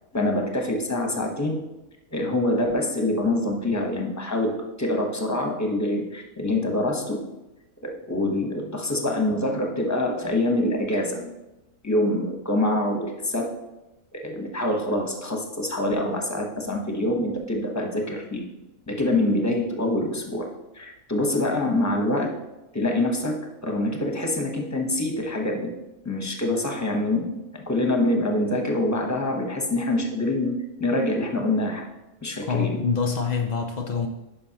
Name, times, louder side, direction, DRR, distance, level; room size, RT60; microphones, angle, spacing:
voice 1, 0.1-1.6 2.1-7.3 7.8-11.4 11.8-13.5 14.1-18.5 18.9-20.5 20.7-22.4 22.7-25.8 26.0-31.8 32.2-32.8, left 1 dB, 15° left, 1 dB, 0.8 m, -25 dB
voice 2, 32.4-34.1, left 5 dB, 85° left, 4 dB, 0.3 m, -25 dB
11.0 x 5.1 x 2.9 m, 0.97 s
omnidirectional pair, 1.4 m